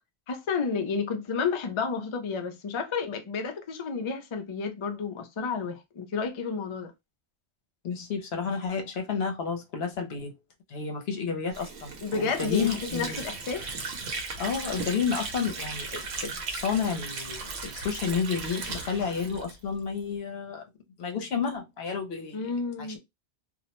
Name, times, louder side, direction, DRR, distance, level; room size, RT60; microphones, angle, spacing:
voice 1, 0.3-6.9 12.0-13.7 22.3-23.0, left 5 dB, 55° left, 0.3 m, -31 dB
voice 2, 7.8-10.3 10.7-13.2 14.4-20.6 21.0-22.4 22.8-23.0, left 6 dB, 70° left, 0.9 m, -31 dB
Water / Sink (filling or washing), 11.5-20.1, right 4 dB, 75° right, 0.9 m, -37 dB
2.4 x 2.1 x 2.9 m
omnidirectional pair, 1.1 m